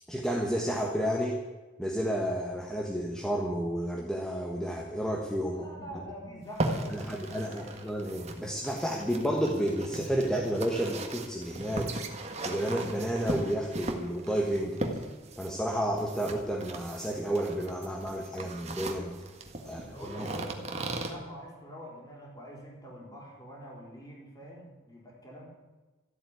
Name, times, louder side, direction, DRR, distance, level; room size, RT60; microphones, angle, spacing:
voice 1, 0.1-1.4 1.8-5.7 6.9-11.9 12.4-14.8 15.4-19.1 19.6-20.4, equal, 5° left, -1 dB, 1.4 m, -31 dB
voice 2, 5.5-7.9 19.6-25.5, equal, 20° left, -2 dB, 4.0 m, -46 dB
sound 1, 6.4-21.1, right 2 dB, 35° right, 1.6 m, -38 dB
14.0 x 8.5 x 9.7 m, 1.2 s
head